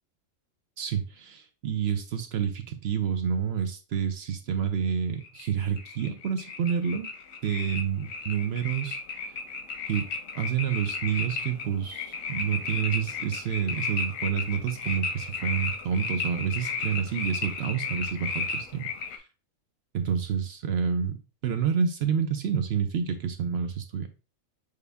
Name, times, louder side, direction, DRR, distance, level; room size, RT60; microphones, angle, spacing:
voice 1, 0.8-7.1 7.4-9.0 9.9-10.1 10.3-18.8 19.1-19.2 19.9-21.2 21.4-24.1, right 7 dB, 60° right, 7 dB, 0.7 m, -28 dB
sound 1, 5.2-19.2, left 4 dB, 90° left, 1.1 m, -34 dB
6.6 x 2.2 x 3.4 m, 0.32 s
omnidirectional pair, 1.4 m